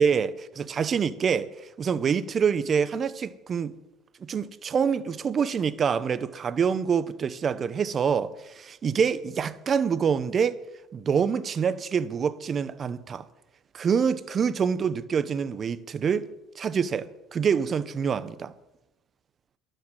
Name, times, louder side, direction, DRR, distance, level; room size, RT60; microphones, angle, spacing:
voice 1, 0.0-1.5 1.8-3.7 4.2-10.6 10.9-13.2 13.7-16.3 16.6-18.5, right 6 dB, 40° right, 0.8 m, -26 dB
12.0 x 9.1 x 7.5 m
hypercardioid pair, 75°, 0 cm